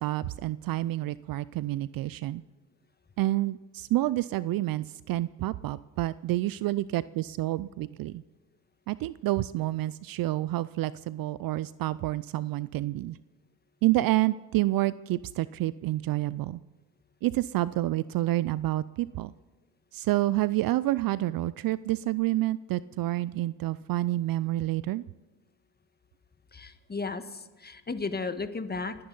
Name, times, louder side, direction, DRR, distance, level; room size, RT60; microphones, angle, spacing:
voice 1, 0.0-2.4 3.2-8.2 8.9-13.2 13.8-16.6 17.2-19.3 19.9-25.0, right 16 dB, 50° right, 18 dB, 0.5 m, -28 dB
voice 2, 26.5-28.9, left 4 dB, 20° left, 10 dB, 1.4 m, -34 dB
30.0 x 10.5 x 4.0 m, 1.2 s
hypercardioid pair, 65°, 46 cm